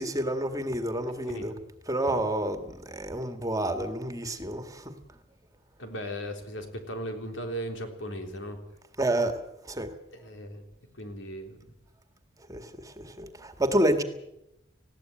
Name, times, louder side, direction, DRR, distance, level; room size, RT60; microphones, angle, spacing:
voice 1, 0.0-1.5 1.9-4.9 9.0-9.4 9.7-9.9 12.5-14.0, right 1 dB, 20° right, 7 dB, 1.8 m, -29 dB
voice 2, 5.8-8.6 10.1-10.6 11.0-11.6, equal, 80° left, 4 dB, 3.8 m, -37 dB
20.0 x 15.5 x 9.0 m, 0.85 s
head